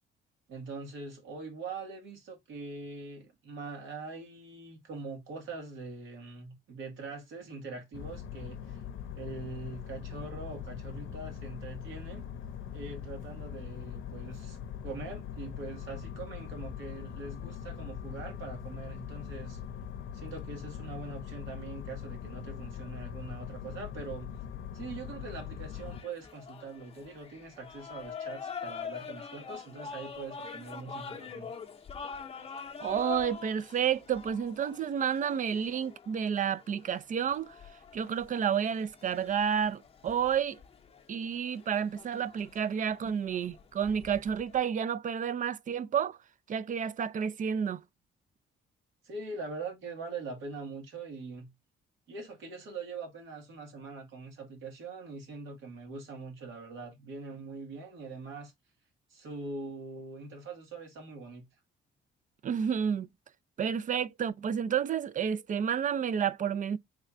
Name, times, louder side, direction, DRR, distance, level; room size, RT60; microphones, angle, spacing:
voice 1, 0.5-8.8 9.1-12.2 12.7-14.6 14.8-19.6 20.1-24.3 24.7-31.5 49.0-51.5 52.1-58.5 59.1-61.5, right 3 dB, 80° right, 1.6 m, -43 dB
sound 1, 7.9-26.0, left 8 dB, 80° left, 0.6 m, -42 dB
sound 2, 25.7-44.6, left 6 dB, 30° left, 0.7 m, -45 dB
voice 2, 32.8-37.6 37.9-40.6 41.1-46.2 46.5-47.8 62.4-63.1 63.6-66.8, right 8 dB, 40° right, 0.4 m, -30 dB
3.4 x 2.4 x 4.2 m
cardioid pair, 90°, 20 cm